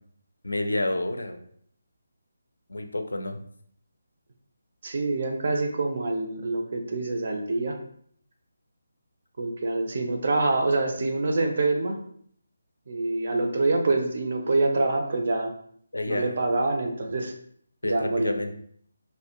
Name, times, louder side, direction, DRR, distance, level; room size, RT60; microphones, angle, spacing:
voice 1, 0.4-1.4 2.7-3.4 15.9-16.3 17.8-18.5, left 2 dB, 70° left, 6 dB, 0.3 m, -29 dB
voice 2, 4.8-7.8 9.4-12.0 12.9-15.5 16.1-17.3 17.8-18.3, right 2 dB, 45° right, 3 dB, 0.4 m, -26 dB
2.2 x 2.1 x 2.8 m, 0.63 s
figure-of-eight pair, 150°, 0 cm